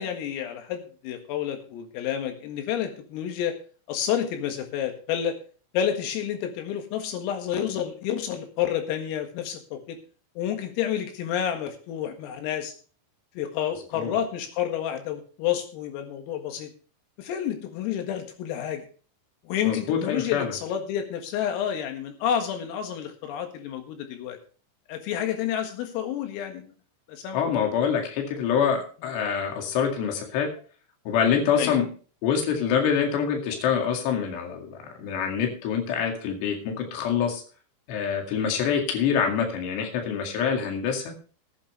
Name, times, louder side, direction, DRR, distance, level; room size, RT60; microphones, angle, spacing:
voice 1, 0.0-3.6 3.9-5.4 5.7-10.0 10.4-12.7 13.4-16.7 17.2-18.9 19.4-24.4 24.9-26.7 27.1-27.4 31.6-31.8, left 9 dB, 90° left, 5 dB, 4.4 m, -29 dB
voice 2, 19.6-20.6 27.3-30.5 31.1-31.9 32.2-37.4 37.9-41.1, left 7 dB, 60° left, 2 dB, 4.0 m, -25 dB
18.5 x 8.6 x 3.3 m, 0.39 s
omnidirectional pair, 5.9 m